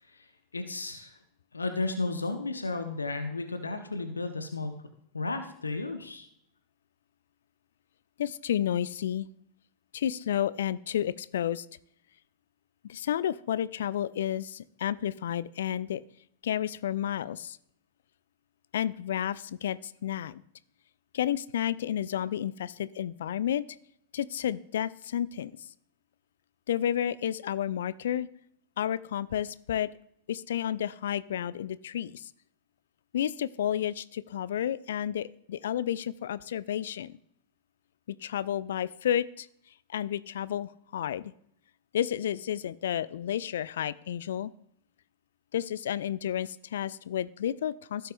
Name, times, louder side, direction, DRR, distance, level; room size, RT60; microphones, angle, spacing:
voice 1, 0.5-1.1 1.5-4.8 5.1-6.3, left 3 dB, 80° left, 7 dB, 0.9 m, -33 dB
voice 2, 8.2-9.3 9.9-11.7 12.8-16.0 16.4-17.6 18.7-20.4 21.1-23.6 24.1-25.5 26.7-28.3 28.8-29.9 30.3-32.3 33.1-37.2 38.1-39.5 39.9-41.3 41.9-44.5 45.5-48.1, left 10 dB, 60° left, 18 dB, 0.4 m, -31 dB
16.0 x 6.5 x 2.6 m, 0.71 s
figure-of-eight pair, 90°, 0 cm